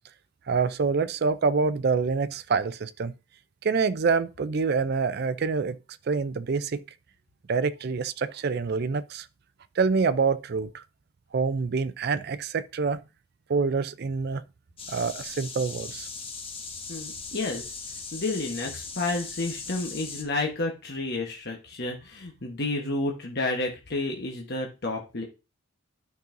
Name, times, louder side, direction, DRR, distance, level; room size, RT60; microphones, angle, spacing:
voice 1, 0.5-3.1 3.6-5.8 6.1-6.8 7.5-9.3 9.8-10.8 11.3-13.0 13.5-14.4 14.9-16.1, right 4 dB, 50° right, 0.4 m, -26 dB
sound 1, 14.8-20.2, left 4 dB, 25° left, 1.1 m, -39 dB
voice 2, 16.9-17.7 18.1-25.2, left 2 dB, 50° left, 1.1 m, -31 dB
12.0 x 5.3 x 2.6 m
head